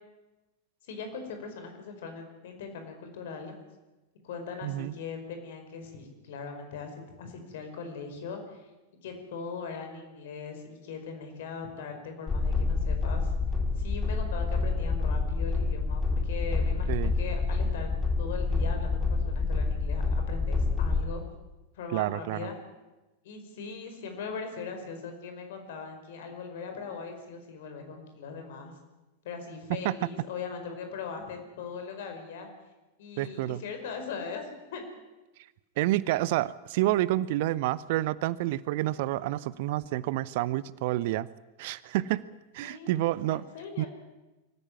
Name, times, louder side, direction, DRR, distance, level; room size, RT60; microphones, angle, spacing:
voice 1, 0.9-3.5 4.2-8.7 9.0-13.3 13.8-17.9 18.2-21.2 21.7-22.6 23.2-28.7 29.2-32.5 33.0-34.8 42.6-43.9, left 5 dB, 55° left, 6 dB, 5.0 m, -40 dB
voice 2, 4.6-4.9 16.9-17.1 21.9-22.4 29.7-29.9 33.2-33.6 35.8-41.3 41.6-42.2 42.5-43.4 43.8-43.9, right 16 dB, 50° right, 20 dB, 0.7 m, -29 dB
sound 1, 12.3-21.0, left 3 dB, 15° left, 3.0 m, -27 dB
24.5 x 15.0 x 9.6 m, 1.1 s
figure-of-eight pair, 90°, 0 cm